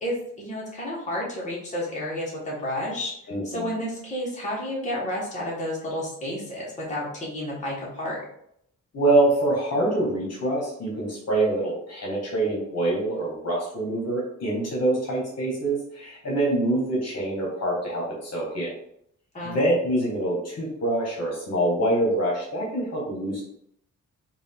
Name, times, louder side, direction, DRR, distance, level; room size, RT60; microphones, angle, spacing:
voice 1, 0.0-3.1 3.4-8.2 19.3-19.6, left 1 dB, 25° left, -5 dB, 1.4 m, -31 dB
voice 2, 3.3-3.7 8.9-18.7 19.4-23.4, right 1 dB, 55° left, -3 dB, 1.3 m, -25 dB
3.7 x 2.5 x 3.5 m, 0.71 s
cardioid pair, 120°, 31 cm